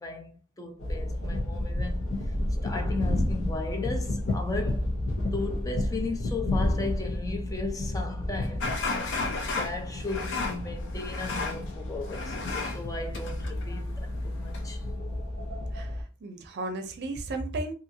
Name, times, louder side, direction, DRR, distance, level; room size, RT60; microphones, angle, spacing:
voice 1, 0.0-2.1 2.6-4.9 5.3-8.7 9.4-14.8, left 3 dB, 15° left, 0.5 m, -36 dB
sound 1, 0.8-16.0, left 1 dB, 85° left, 0.9 m, -31 dB
sound 2, 8.6-14.9, left 3 dB, 60° left, 0.6 m, -35 dB
voice 2, 15.7-17.7, right 2 dB, 55° right, 0.6 m, -34 dB
2.8 x 2.4 x 2.7 m
head